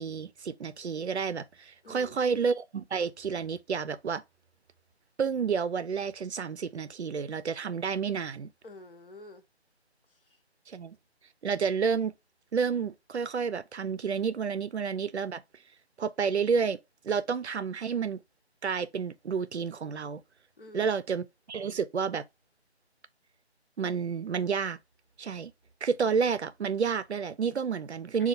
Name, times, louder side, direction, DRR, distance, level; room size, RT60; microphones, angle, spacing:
voice 1, 0.0-4.2 5.2-8.5 10.7-11.0 11.4-12.1 12.5-15.4 16.0-16.8 17.0-18.2 18.6-20.2 20.7-22.2 23.8-24.8 25.2-25.5 25.8-28.3, right 6 dB, 75° right, 0.5 m, -30 dB
voice 2, 1.8-2.3 8.6-9.4 10.1-10.4 20.6-21.0 28.2-28.3, left 2 dB, 55° left, 0.7 m, -49 dB
4.1 x 2.4 x 4.3 m
figure-of-eight pair, 160°, 33 cm